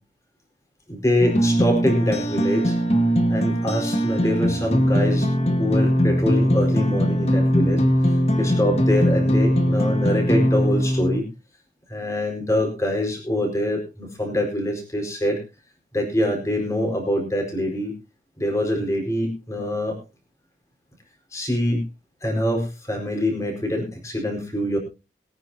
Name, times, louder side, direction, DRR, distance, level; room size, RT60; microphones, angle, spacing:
voice 1, 0.9-2.8 3.3-5.3 5.6-11.3 11.9-15.4 15.9-18.0 18.4-19.9 21.3-21.8 22.2-24.8, left 1 dB, 15° left, 1 dB, 4.6 m, -24 dB
sound 1, 1.2-11.2, equal, 35° left, 1.8 m, -20 dB
22.5 x 9.7 x 2.8 m, 0.28 s
head